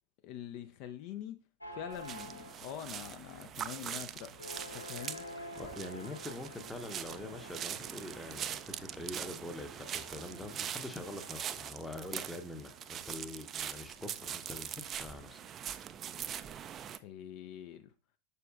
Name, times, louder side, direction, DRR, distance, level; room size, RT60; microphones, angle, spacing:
voice 1, 0.2-1.4 1.7-4.3 4.7-5.2 16.9-17.9, left 10 dB, 45° left, 10 dB, 0.4 m, -44 dB
sound 1, 1.6-15.5, left 1 dB, 85° left, 0.9 m, -51 dB
sound 2, 1.9-17.0, right 9 dB, 30° right, 0.3 m, -43 dB
voice 2, 5.4-15.4, left 1 dB, 5° left, 7 dB, 0.8 m, -44 dB
6.7 x 6.6 x 2.4 m, 0.34 s
figure-of-eight pair, 90°, 0 cm